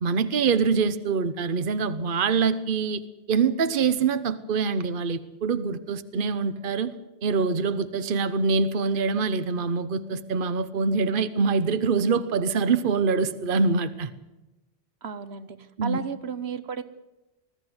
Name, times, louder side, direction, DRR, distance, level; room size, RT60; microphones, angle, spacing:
voice 1, 0.0-3.0 3.3-6.9 7.2-14.1 15.8-16.0, right 5 dB, 55° right, 12 dB, 1.1 m, -24 dB
voice 2, 15.0-16.8, right 7 dB, 75° right, 13 dB, 1.3 m, -33 dB
20.5 x 14.5 x 9.6 m, 1.0 s
omnidirectional pair, 1.1 m